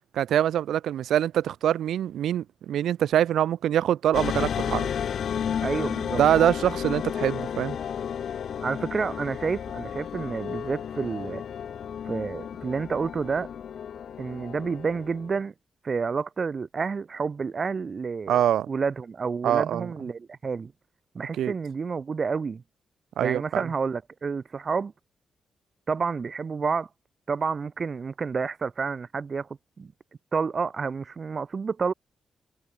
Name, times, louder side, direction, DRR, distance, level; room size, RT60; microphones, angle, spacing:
voice 1, 0.1-4.9 6.1-7.8 18.3-18.7 19.4-19.9 21.4-21.5 23.2-23.6, right 11 dB, 90° right, 1.9 m, -24 dB
sound 1, 4.1-15.4, left 8 dB, 70° left, 1.4 m, -32 dB
voice 2, 5.6-6.2 8.6-11.4 12.0-13.5 14.2-15.5 15.8-18.4 18.7-20.7 21.1-22.6 23.2-24.9 25.9-26.9 27.3-29.5 29.8-29.9 30.3-31.9, right 5 dB, 45° right, 2.4 m, -29 dB
cardioid pair, 95°, 0 cm